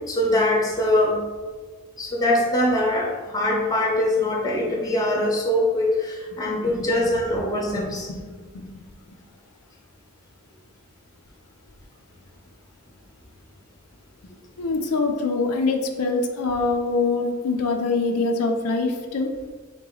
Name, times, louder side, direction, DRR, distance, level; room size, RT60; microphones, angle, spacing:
voice 1, 0.1-1.2 2.0-8.1, left 1 dB, 15° left, -1 dB, 0.7 m, -22 dB
voice 2, 6.7-7.1 7.5-8.8 9.1-9.2 14.2-14.3 14.6-19.3, left 3 dB, 85° left, 4 dB, 0.5 m, -25 dB
3.9 x 3.0 x 3.8 m, 1.5 s
head